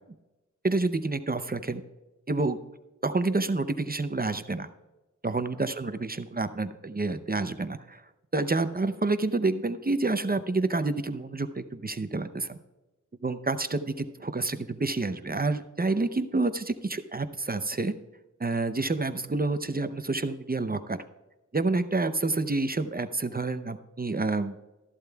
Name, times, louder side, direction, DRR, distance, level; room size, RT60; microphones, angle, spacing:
voice 1, 0.6-1.8 2.3-2.6 3.0-4.7 5.2-8.0 8.3-12.6 13.2-17.9 18.4-21.0 21.5-24.6, right 3 dB, 30° right, 10 dB, 0.6 m, -28 dB
14.0 x 11.5 x 2.3 m, 1.0 s
wide cardioid pair, 80°, 30 cm